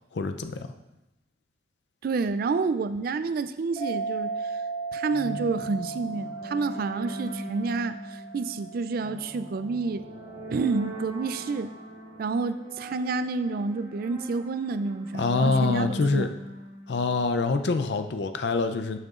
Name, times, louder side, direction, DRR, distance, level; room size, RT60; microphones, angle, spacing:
voice 1, 0.1-0.7 15.2-16.3 16.9-19.0, left 3 dB, 60° left, 8 dB, 0.5 m, -25 dB
voice 2, 2.0-4.6 4.9-10.1 10.5-11.7 12.2-16.3, right 4 dB, 50° right, 12 dB, 0.3 m, -29 dB
sound 1, 3.8-10.8, right 4 dB, 30° left, 2.9 m, -37 dB
sound 2, 5.1-17.6, right 1 dB, 30° right, 1.6 m, -40 dB
10.5 x 6.5 x 2.4 m, 0.96 s
head